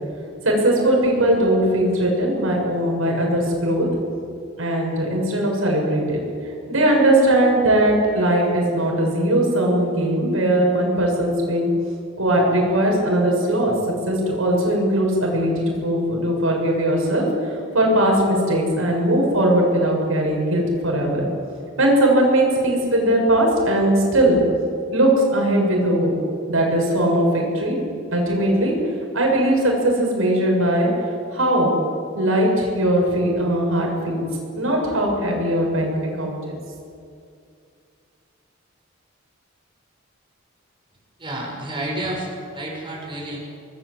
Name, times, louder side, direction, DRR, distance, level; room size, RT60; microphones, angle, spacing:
voice 1, 0.4-3.9 4.6-6.2 6.7-11.7 12.2-13.7 14.1-17.3 17.7-21.3 21.8-24.4 24.9-26.1 26.5-27.8 28.1-28.7 29.1-30.9 31.3-31.7 32.2-34.3 34.6-36.6, right 1 dB, 80° right, -1 dB, 7.2 m, -19 dB
voice 2, 41.2-43.4, right 1 dB, 25° right, -2 dB, 6.8 m, -30 dB
26.5 x 20.0 x 8.5 m, 2.4 s
head